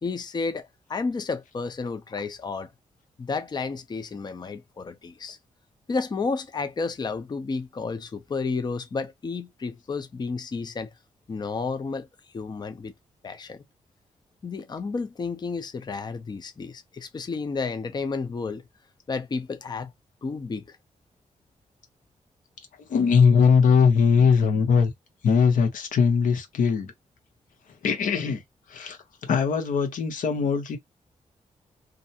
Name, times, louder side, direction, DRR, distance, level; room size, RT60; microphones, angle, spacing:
voice 1, 0.0-2.7 3.2-5.4 5.9-10.9 11.3-12.1 12.3-12.9 13.2-13.6 14.4-18.7 19.1-19.9 20.2-20.8, left 4 dB, 35° left, 0.5 m, -31 dB
voice 2, 22.9-24.9 25.2-26.9 27.8-28.4 28.7-30.8, left 6 dB, 85° left, 0.9 m, -20 dB
2.5 x 2.1 x 2.7 m
cardioid pair, 80°, 13 cm